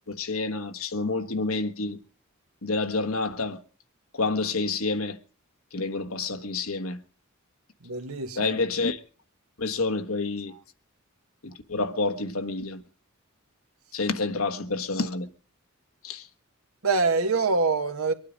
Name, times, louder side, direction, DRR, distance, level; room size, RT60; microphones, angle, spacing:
voice 1, 0.1-2.0 2.6-3.6 4.1-5.2 5.7-7.0 8.3-9.0 9.6-10.6 11.4-12.8 13.9-15.3 16.0-16.3, left 3 dB, 80° left, 1.4 m, -28 dB
voice 2, 7.8-8.6 10.5-10.6 16.8-18.1, right 4 dB, 85° right, 1.6 m, -25 dB
24.0 x 9.5 x 5.1 m
head